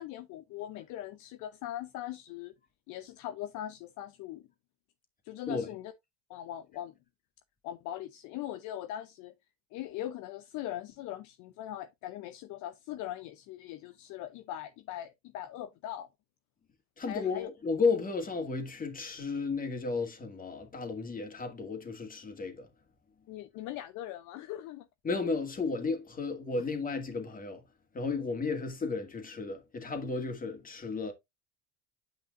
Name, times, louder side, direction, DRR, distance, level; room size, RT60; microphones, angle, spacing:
voice 1, 0.0-2.5 2.9-4.4 5.3-5.9 6.3-6.9 7.6-9.3 9.7-16.1 17.1-17.5 23.3-24.9, left 12 dB, 55° left, 0.7 m, -40 dB
voice 2, 17.0-22.7 25.0-27.6 27.9-31.1, left 4 dB, 25° left, 2.2 m, -33 dB
9.3 x 5.4 x 2.5 m
supercardioid pair, 90°, 34 cm